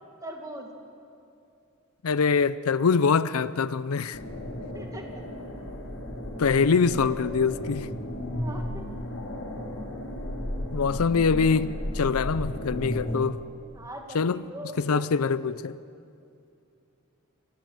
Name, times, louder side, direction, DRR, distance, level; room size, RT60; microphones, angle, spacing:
voice 1, 0.2-0.7 4.7-5.2 8.3-8.9 13.7-15.0, right 1 dB, 15° right, 1.9 m, -40 dB
voice 2, 2.0-4.2 6.4-7.9 10.7-13.4 14.1-14.4 14.8-15.8, left 5 dB, 90° left, 0.5 m, -24 dB
sound 1, 4.1-13.1, left 1 dB, 65° left, 3.9 m, -34 dB
25.5 x 16.0 x 7.8 m
head